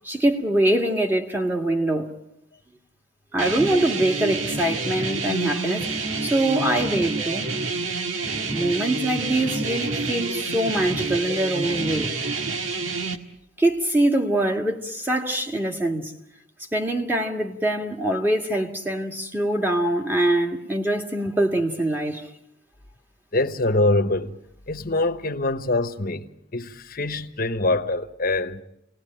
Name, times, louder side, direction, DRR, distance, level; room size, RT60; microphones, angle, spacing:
voice 1, 0.0-2.1 3.3-7.5 8.4-12.1 13.6-16.1 16.7-22.2, right 1 dB, 10° right, 1.9 m, -24 dB
sound 1, 3.4-13.2, right 3 dB, 80° right, 1.8 m, -28 dB
voice 2, 23.3-24.4 24.7-26.3 26.5-28.6, left 2 dB, 45° left, 1.2 m, -24 dB
29.0 x 19.5 x 8.8 m
head